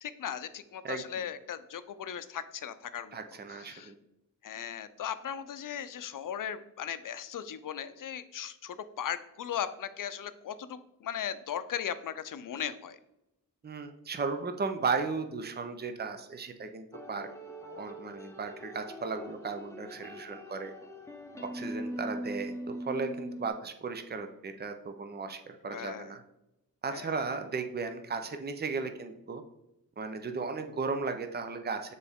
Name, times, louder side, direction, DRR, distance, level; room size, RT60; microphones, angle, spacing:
voice 1, 0.0-3.2 3.6-3.9 4.4-13.0 25.7-26.1 26.9-27.1, left 9 dB, 65° left, 12 dB, 0.5 m, -38 dB
voice 2, 0.8-1.2 3.1-4.0 13.6-17.3 17.6-20.7 21.4-26.2 26.8-29.4 30.0-31.9, right 4 dB, 30° right, 7 dB, 0.6 m, -35 dB
sound 1, 16.9-23.5, equal, 10° left, 0.8 m, -42 dB
6.9 x 4.0 x 3.6 m, 0.89 s
wide cardioid pair, 85°, 34 cm